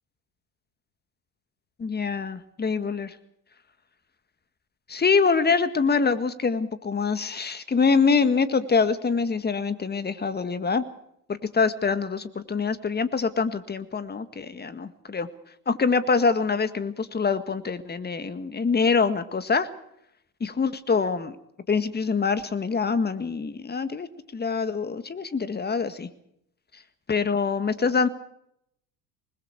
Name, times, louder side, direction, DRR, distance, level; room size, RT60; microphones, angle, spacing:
voice 1, 1.8-3.2 4.9-10.9 11.3-15.3 15.7-19.7 20.4-21.4 21.7-26.1 27.1-28.1, left 5 dB, 20° left, 12 dB, 1.9 m, -25 dB
27.0 x 21.0 x 4.7 m, 0.74 s
figure-of-eight pair, 70°, 49 cm